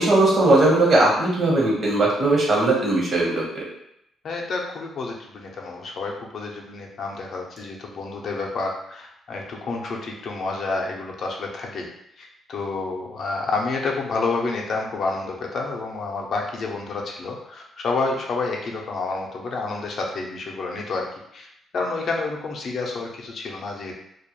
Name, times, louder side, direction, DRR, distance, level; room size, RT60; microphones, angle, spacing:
voice 1, 0.0-3.6, right 2 dB, 50° right, -3 dB, 0.9 m, -19 dB
voice 2, 4.2-11.9 12.2-21.1 21.3-21.5 21.7-23.9, left 3 dB, 55° left, 0 dB, 0.5 m, -29 dB
2.3 x 2.1 x 2.9 m, 0.77 s
cardioid pair, 90°, 0 cm